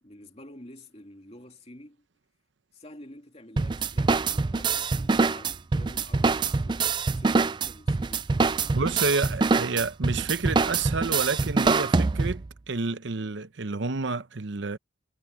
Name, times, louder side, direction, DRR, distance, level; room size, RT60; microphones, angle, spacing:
voice 1, 0.0-2.1 2.7-8.9, left 1 dB, 30° left, 2.8 m, -49 dB
sound 1, 3.6-12.5, right 4 dB, 25° right, 0.3 m, -25 dB
voice 2, 8.7-14.8, right 4 dB, 70° right, 0.8 m, -29 dB
head